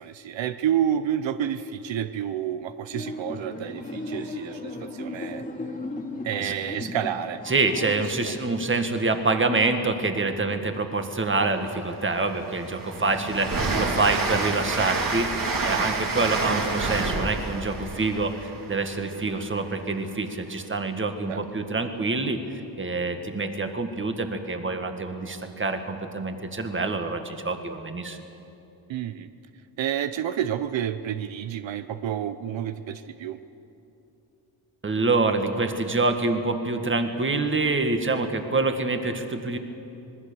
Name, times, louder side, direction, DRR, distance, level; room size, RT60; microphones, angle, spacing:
voice 1, 0.0-5.4 6.2-7.4 7.8-8.3 21.3-21.4 28.9-29.3 29.8-33.4, right 10 dB, 80° right, 11 dB, 0.8 m, -29 dB
sound 1, 2.9-7.9, left 2 dB, 15° left, 2.3 m, -36 dB
voice 2, 7.5-18.3 18.7-28.2 34.8-39.6, right 3 dB, 25° right, 6 dB, 1.8 m, -26 dB
Train, 11.9-19.6, right 3 dB, 45° right, 2.7 m, -29 dB
25.5 x 21.0 x 7.0 m, 2.9 s
wide cardioid pair, 125°, 44 cm